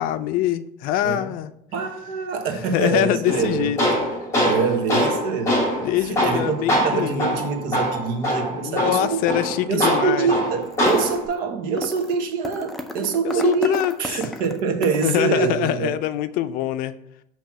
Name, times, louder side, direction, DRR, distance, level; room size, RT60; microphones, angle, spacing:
voice 1, 0.0-1.5 2.7-3.8 5.8-7.4 8.6-10.3 13.2-13.9 15.0-16.9, left 12 dB, 70° left, 12 dB, 0.4 m, -24 dB
voice 2, 1.7-3.7 4.4-5.6 6.0-16.0, right 5 dB, 75° right, 5 dB, 1.0 m, -25 dB
Tools, 3.3-11.3, equal, 20° left, 2.3 m, -23 dB
sound 1, 10.6-11.3 11.8-12.1 12.4-15.1, left 1 dB, ahead, 0.5 m, -32 dB
7.2 x 2.9 x 5.7 m, 0.78 s
cardioid pair, 150°, 15 cm